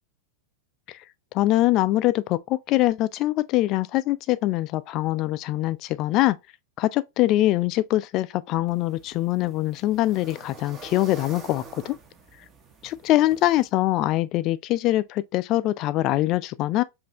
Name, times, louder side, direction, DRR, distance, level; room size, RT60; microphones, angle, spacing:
voice 1, 1.3-6.4 6.8-12.0 12.8-16.8, left 16 dB, 40° left, 0.3 m, -23 dB
sound 1, 8.7-13.7, right 4 dB, 25° right, 1.0 m, -46 dB
5.3 x 2.6 x 2.9 m
figure-of-eight pair, 90°, 0 cm